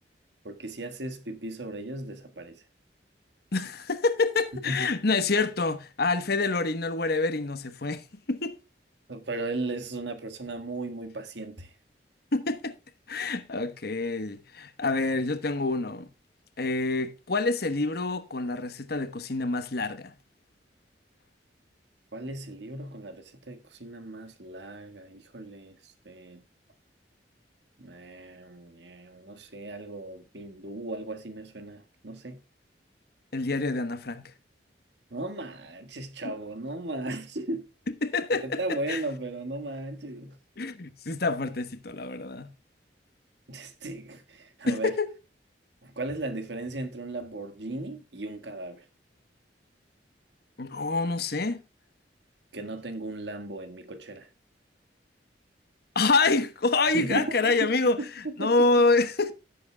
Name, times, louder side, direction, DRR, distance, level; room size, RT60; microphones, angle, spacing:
voice 1, 0.4-2.6 4.6-4.9 9.1-11.7 22.1-26.4 27.8-32.4 35.1-37.7 38.3-40.4 43.5-44.9 45.8-48.8 52.5-54.3 56.9-57.5 58.0-58.5, right 2 dB, 75° right, 1.7 m, -36 dB
voice 2, 3.5-8.6 12.3-12.7 13.1-16.1 16.6-20.1 33.3-34.3 36.2-36.3 37.9-39.0 40.6-42.5 44.7-45.1 50.6-51.6 55.9-59.3, left 3 dB, 60° left, 1.1 m, -27 dB
16.0 x 7.9 x 2.3 m
head